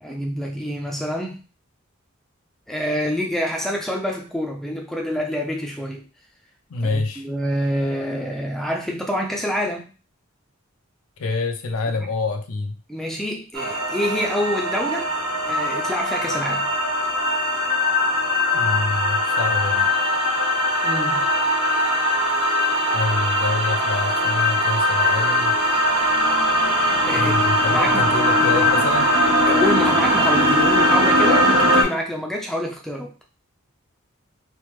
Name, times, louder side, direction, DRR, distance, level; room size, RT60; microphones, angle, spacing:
voice 1, 0.0-1.4 2.7-6.0 6.9-9.9 12.9-15.1 15.5-16.7 20.8-21.2 27.1-28.1 29.5-33.1, equal, ahead, 0 dB, 0.3 m, -27 dB
voice 2, 6.7-7.2 11.2-12.7 18.5-19.9 22.9-25.6 27.0-29.1, left 3 dB, 85° left, 7 dB, 0.5 m, -27 dB
sound 1, 13.5-31.8, left 1 dB, 80° right, 1.2 m, -20 dB
3.3 x 2.0 x 3.0 m, 0.34 s
head